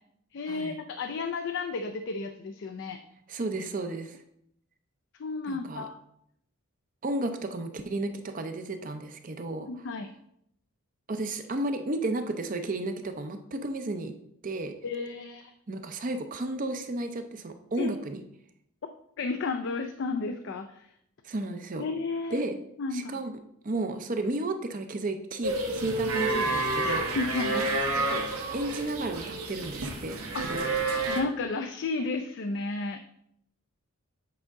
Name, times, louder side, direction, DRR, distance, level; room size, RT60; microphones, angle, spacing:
voice 1, 0.3-3.0 5.2-6.0 9.7-10.1 14.8-15.5 17.8-17.9 19.2-20.9 21.8-22.4 22.8-23.2 27.1-27.6 30.3-30.7 31.1-33.0, left 3 dB, 55° left, 7 dB, 0.4 m, -32 dB
voice 2, 3.3-4.2 5.5-5.9 7.0-9.8 11.1-14.2 14.4-14.7 15.7-18.2 21.2-21.9 22.3-22.6 22.9-23.3 23.6-27.0 27.5-28.3 28.5-30.2, right 2 dB, 40° right, 7 dB, 0.6 m, -33 dB
sound 1, 25.4-31.2, right 2 dB, 85° right, 1.2 m, -29 dB
7.8 x 4.8 x 3.6 m, 0.74 s
head